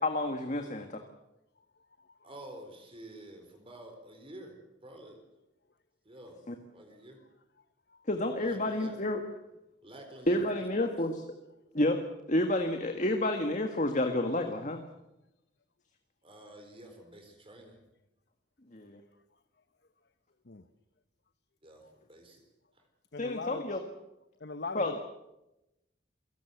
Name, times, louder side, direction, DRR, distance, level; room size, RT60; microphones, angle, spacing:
voice 1, 0.0-1.0 6.5-6.6 8.1-9.2 10.3-11.2 11.7-12.0 12.3-14.8 18.7-19.0 23.2-23.8 24.7-25.0, left 1 dB, 40° left, 5 dB, 1.7 m, -30 dB
voice 2, 2.2-4.6 4.8-5.2 6.0-7.2 8.4-9.3 9.8-10.9 16.2-17.8 21.6-22.5 22.7-22.9, right 1 dB, 30° right, 4 dB, 4.2 m, -50 dB
voice 3, 23.1-23.6 24.4-25.0, left 3 dB, 60° left, 11 dB, 1.0 m, -40 dB
28.0 x 18.0 x 8.1 m, 0.93 s
head